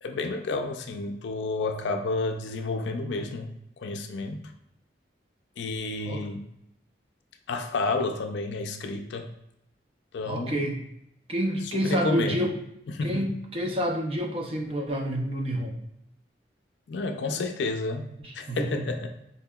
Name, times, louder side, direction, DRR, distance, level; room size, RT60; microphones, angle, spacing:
voice 1, 0.0-4.5 5.6-6.4 7.5-9.3 10.1-10.7 11.7-12.5 12.9-13.3 16.9-19.2, left 3 dB, 70° left, 6 dB, 0.4 m, -31 dB
voice 2, 10.3-10.8 11.3-12.5 13.0-15.8 18.2-18.9, equal, 30° right, 2 dB, 0.4 m, -28 dB
4.2 x 2.8 x 2.3 m, 0.79 s
head